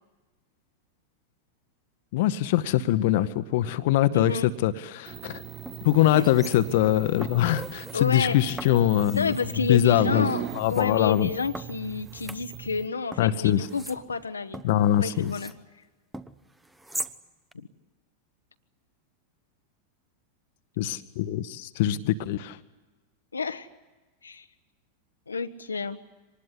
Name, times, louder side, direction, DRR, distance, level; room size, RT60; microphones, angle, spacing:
voice 1, 2.1-4.3 4.6-5.4 5.8-9.3 9.7-10.3 10.5-11.3 13.2-13.7 14.6-15.3 20.8-22.6, left 13 dB, 50° left, 12 dB, 0.9 m, -23 dB
voice 2, 4.1-4.5 6.1-6.3 7.9-8.4 9.1-14.6 15.0-15.5 17.5-17.7 23.3-23.7 24.2-24.5 25.3-26.0, left 5 dB, 75° left, 8 dB, 0.9 m, -30 dB
sound 1, 5.1-5.3 5.7-6.9 7.2-8.0 8.6-9.5 10.1-10.9 11.5-12.8 13.1-15.6 16.1-17.2 17.5-17.6, right 1 dB, 5° right, 0.9 m, -41 dB
sound 2, 5.1-12.9, right 11 dB, 35° right, 0.8 m, -39 dB
25.0 x 20.0 x 9.8 m, 1.2 s
figure-of-eight pair, 90°, 0 cm